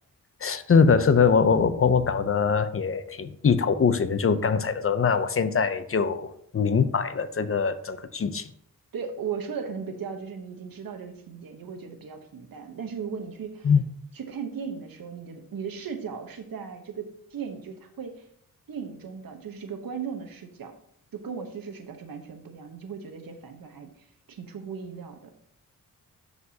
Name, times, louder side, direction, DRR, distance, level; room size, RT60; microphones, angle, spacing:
voice 1, 0.4-8.5 13.6-13.8, left 5 dB, 40° left, 12 dB, 0.5 m, -22 dB
voice 2, 8.9-13.7 14.1-18.2 18.7-20.8 21.1-23.9 24.3-25.3, right 6 dB, 80° right, 6 dB, 1.0 m, -37 dB
12.5 x 4.7 x 2.8 m, 0.67 s
wide cardioid pair, 105°, 34 cm